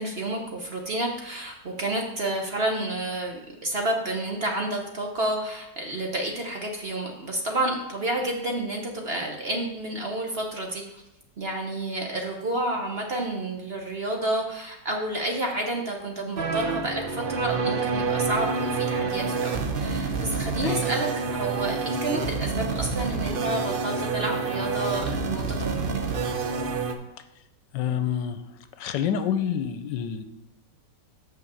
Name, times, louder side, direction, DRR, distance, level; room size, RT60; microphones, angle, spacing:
voice 1, 0.0-10.8 11.4-25.9, right 1 dB, 45° right, 1 dB, 0.9 m, -30 dB
sound 1, 16.4-26.9, right 4 dB, 85° right, 0.4 m, -28 dB
voice 2, 27.7-28.4 28.8-30.2, left 8 dB, 85° left, 10 dB, 1.3 m, -27 dB
6.1 x 5.7 x 6.9 m, 0.90 s
omnidirectional pair, 1.9 m